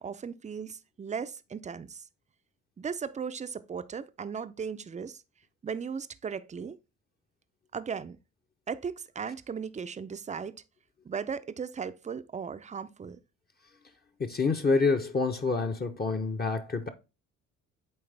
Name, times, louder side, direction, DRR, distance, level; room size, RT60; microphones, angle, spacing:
voice 1, 0.0-2.0 2.8-5.2 5.6-6.8 7.7-8.2 8.7-10.6 11.0-13.2, right 6 dB, 20° right, 0.5 m, -37 dB
voice 2, 14.2-16.9, left 4 dB, 25° left, 0.8 m, -27 dB
8.7 x 3.5 x 3.3 m
supercardioid pair, 75°, 35 cm